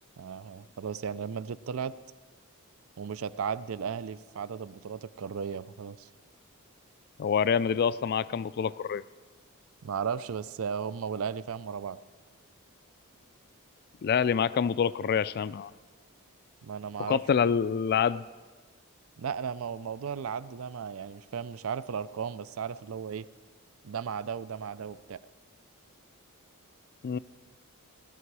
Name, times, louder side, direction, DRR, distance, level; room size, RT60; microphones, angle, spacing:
voice 1, 0.2-1.9 3.0-6.1 9.8-12.0 16.6-17.5 19.2-23.3 23.8-25.2, right 6 dB, 65° right, 16 dB, 0.4 m, -35 dB
voice 2, 7.2-9.0 14.0-15.7 17.1-18.2 27.0-27.2, left 7 dB, 45° left, 17 dB, 0.3 m, -26 dB
18.0 x 12.0 x 4.8 m, 1.5 s
head